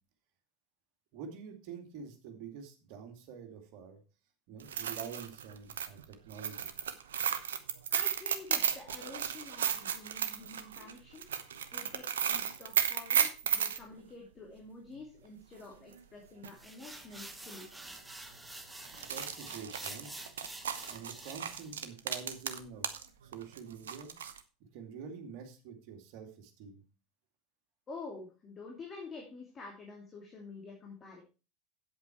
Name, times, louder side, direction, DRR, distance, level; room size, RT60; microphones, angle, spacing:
voice 1, 1.1-4.0 4.5-6.7 18.9-20.2 20.9-22.9 23.2-24.1 24.6-26.8, right 6 dB, 55° right, 5 dB, 2.4 m, -47 dB
sound 1, 4.6-13.8 15.9-16.0 16.4-16.5 17.3-17.5 17.8-18.0 18.8-23.0 23.3-24.4, right 8 dB, 75° right, 0.9 m, -34 dB
voice 2, 7.9-11.2 11.7-17.7 27.9-31.2, left 3 dB, 30° left, 0 dB, 2.9 m, -48 dB
sound 2, 16.6-21.7, right 1 dB, 5° right, 1.5 m, -48 dB
8.8 x 8.2 x 4.6 m, 0.32 s
figure-of-eight pair, 80°, 0 cm